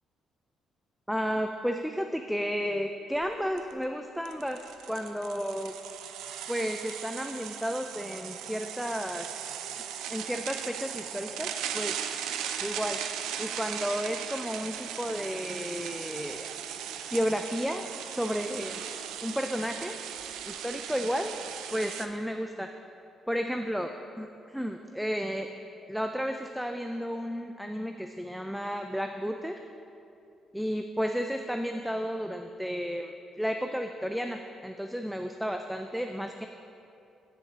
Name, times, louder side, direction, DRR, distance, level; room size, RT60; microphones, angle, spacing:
voice 1, 1.1-5.7 6.5-9.4 9.8-12.0 12.6-13.0 13.4-16.5 17.1-18.8 19.2-20.0 20.5-21.3 21.7-22.7 23.3-23.9 24.2-25.5 25.9-29.6 30.5-33.1 33.4-36.5, equal, ahead, 5 dB, 0.3 m, -32 dB
sound 1, 3.2-3.3 3.6-3.7 4.3-22.1, right 9 dB, 90° right, 0.3 m, -38 dB
9.0 x 7.4 x 2.8 m, 2.6 s
cardioid pair, 90°, 0 cm